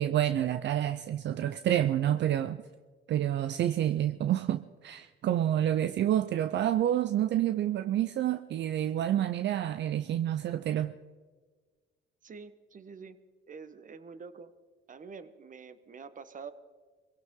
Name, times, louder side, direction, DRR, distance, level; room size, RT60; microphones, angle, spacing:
voice 1, 0.0-2.6 3.1-10.9, right 11 dB, 65° right, 0.6 m, -28 dB
voice 2, 12.2-13.2 13.5-14.5 14.9-16.5, right 5 dB, 40° right, 1.2 m, -46 dB
23.0 x 16.5 x 3.8 m
cardioid pair, 90°, 20 cm